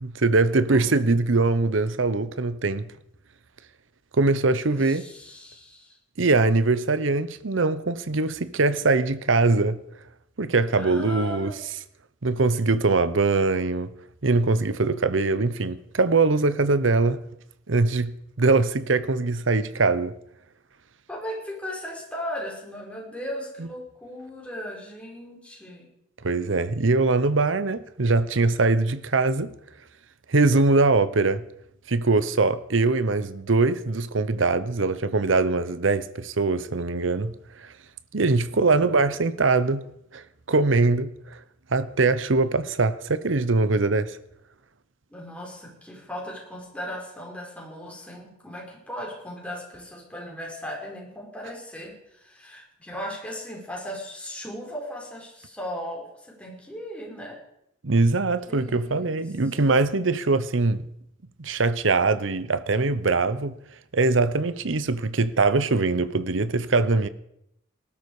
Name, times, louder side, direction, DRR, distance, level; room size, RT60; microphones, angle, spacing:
voice 1, 0.0-2.9 4.1-5.0 6.2-9.8 10.4-11.5 12.2-13.9 14.2-17.2 17.7-20.1 23.6-23.7 26.2-29.5 30.3-31.4 31.9-37.7 38.1-39.8 40.1-41.4 41.7-44.2 57.8-60.8 61.4-63.5 63.9-67.1, right 3 dB, 70° right, 0.9 m, -22 dB
voice 2, 0.7-1.0 4.7-6.0 10.7-11.6 21.1-25.9 38.5-38.8 45.1-57.4 58.5-59.2, equal, 5° left, 5.1 m, -37 dB
19.0 x 12.5 x 4.9 m
head